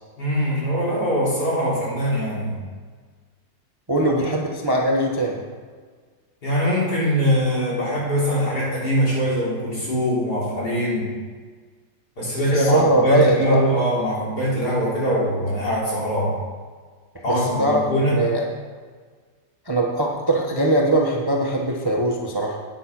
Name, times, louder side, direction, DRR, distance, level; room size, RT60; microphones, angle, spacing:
voice 1, 0.2-2.6 4.0-4.3 6.4-11.1 12.2-16.4 17.2-18.2, equal, 60° left, -7 dB, 4.4 m, -22 dB
voice 2, 3.9-5.4 12.2-13.6 17.3-17.8 18.1-18.4 19.7-22.6, right 1 dB, 15° right, -1 dB, 0.8 m, -21 dB
9.3 x 8.8 x 6.1 m, 1.5 s
omnidirectional pair, 2.0 m